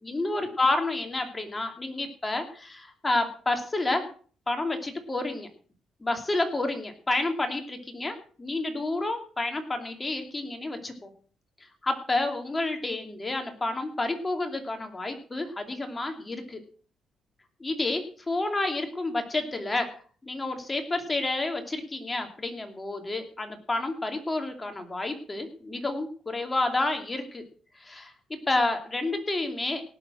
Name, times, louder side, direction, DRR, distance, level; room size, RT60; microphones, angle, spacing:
voice 1, 0.0-4.1 4.5-5.5 6.0-11.1 11.8-16.6 17.6-19.9 20.2-27.4 27.8-29.8, left 2 dB, 20° left, 5 dB, 2.7 m, -30 dB
18.0 x 7.1 x 6.3 m, 0.42 s
cardioid pair, 90°, 0 cm